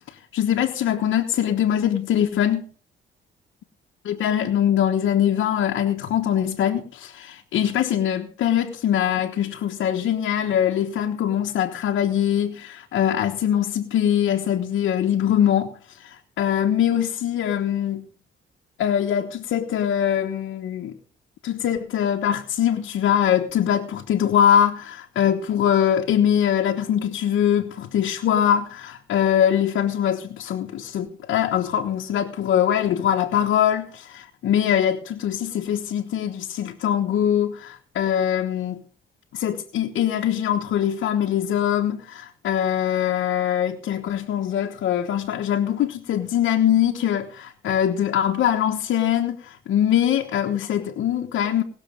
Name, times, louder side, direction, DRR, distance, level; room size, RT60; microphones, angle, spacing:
voice 1, 0.1-2.7 4.0-18.1 18.8-21.0 21.4-38.8 39.3-51.6, left 10 dB, 75° left, 1.2 m, -22 dB
19.0 x 6.7 x 5.1 m
cardioid pair, 90°, 20 cm